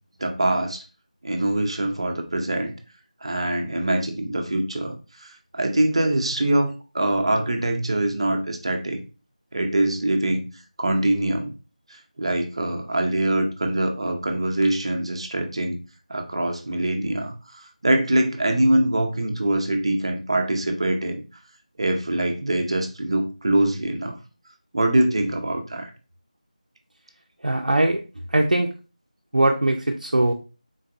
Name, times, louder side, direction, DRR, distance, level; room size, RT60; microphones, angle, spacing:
voice 1, 0.2-0.8 1.2-2.7 3.2-9.0 9.5-10.4 10.8-11.5 11.9-15.8 16.1-21.2 21.8-24.2 24.7-25.9, right 1 dB, 45° right, 4 dB, 0.6 m, -23 dB
voice 2, 27.4-28.0 28.3-28.7 29.3-30.3, right 1 dB, 85° right, 2 dB, 0.5 m, -20 dB
3.8 x 2.5 x 2.5 m, 0.32 s
figure-of-eight pair, 170°, 4 cm